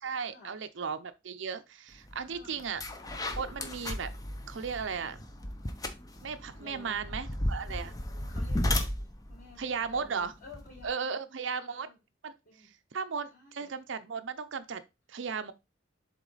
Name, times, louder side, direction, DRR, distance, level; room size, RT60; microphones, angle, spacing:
voice 1, 0.0-2.8 3.4-4.1 4.5-5.2 6.2-7.9 9.6-10.3 10.8-11.9 12.2-12.3 12.9-14.8 15.1-15.5, right 6 dB, 65° right, 0.6 m, -35 dB
sound 1, 2.1-2.2 2.6-10.9, left 1 dB, 20° left, 0.6 m, -35 dB
voice 2, 2.3-2.6 4.9-5.1 6.6-7.0 8.3-8.7 9.3-11.2 11.5-12.0 12.4-12.7 13.3-13.7, left 3 dB, 45° left, 3.8 m, -52 dB
7.2 x 3.7 x 3.9 m
head